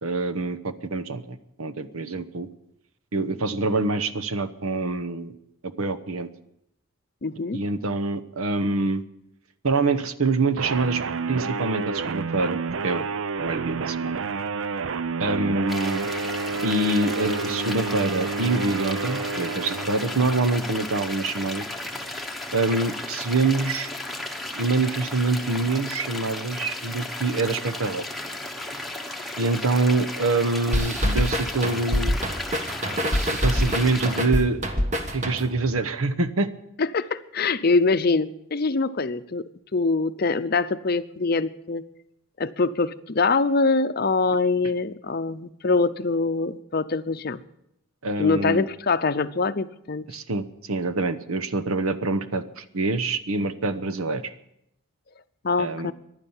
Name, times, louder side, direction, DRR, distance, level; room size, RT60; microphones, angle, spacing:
voice 1, 0.0-2.5 3.1-5.3 5.8-6.3 7.5-9.0 9.6-11.0 11.3-13.0 13.4-14.2 15.2-16.1 16.6-21.7 22.5-23.9 24.5-28.0 29.4-32.2 33.4-34.6 35.1-36.5 48.0-48.6 50.1-54.3 55.6-55.9, right 3 dB, 90° right, 12 dB, 1.0 m, -25 dB
voice 2, 7.2-7.6 36.8-41.9 42.4-47.4 48.2-50.0 55.4-55.9, left 3 dB, 45° left, 12 dB, 0.6 m, -24 dB
sound 1, 10.6-20.8, right 4 dB, 70° right, 0.5 m, -30 dB
sound 2, 15.7-34.2, left 1 dB, ahead, 1.1 m, -34 dB
sound 3, 30.7-35.7, equal, 35° right, 1.4 m, -25 dB
15.5 x 11.0 x 7.2 m, 0.79 s
head